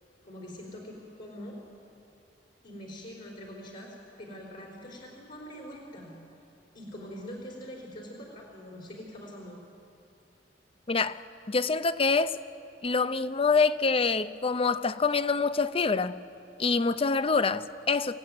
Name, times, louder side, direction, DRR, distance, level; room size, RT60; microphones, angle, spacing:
voice 1, 0.2-1.6 2.6-6.1 6.7-9.6, equal, 55° left, 3.9 m, -43 dB
voice 2, 10.9-11.2 11.5-12.4 12.8-16.2 16.6-18.2, left 4 dB, 35° left, 0.6 m, -26 dB
28.0 x 15.5 x 9.6 m
head